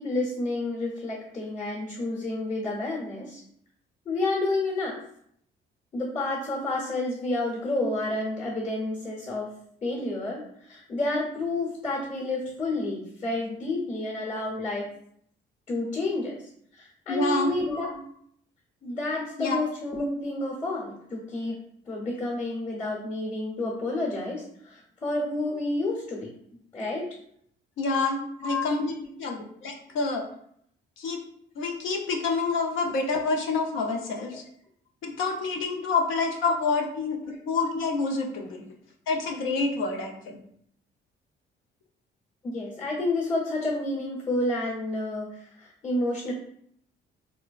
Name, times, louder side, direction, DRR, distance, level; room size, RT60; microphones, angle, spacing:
voice 1, 0.0-3.4 4.0-5.0 5.9-9.5 9.8-10.4 10.7-14.9 15.7-18.0 18.8-21.6 21.9-26.3 26.7-27.1 28.4-28.7 37.2-37.4 42.4-46.3, left 2 dB, 35° left, -2 dB, 1.0 m, -30 dB
voice 2, 17.1-17.5 19.4-19.6 27.8-28.9 29.2-30.2 31.0-31.2 31.6-34.4 35.0-38.6 39.1-40.4, left 3 dB, 80° left, 1 dB, 0.6 m, -27 dB
3.2 x 2.0 x 2.4 m, 0.67 s
cardioid pair, 90°, 20 cm